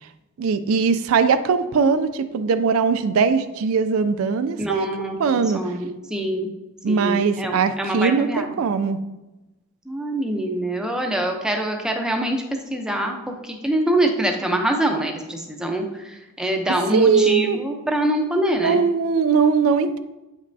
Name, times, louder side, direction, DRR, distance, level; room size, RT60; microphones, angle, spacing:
voice 1, 0.4-4.9 5.2-5.7 6.8-9.0 16.9-17.6 18.6-20.0, right 5 dB, 70° right, 10 dB, 0.4 m, -20 dB
voice 2, 4.6-6.5 6.9-8.5 9.9-12.4 12.7-18.8, right 1 dB, 5° right, 2 dB, 0.6 m, -24 dB
8.1 x 5.2 x 2.7 m, 1.0 s
head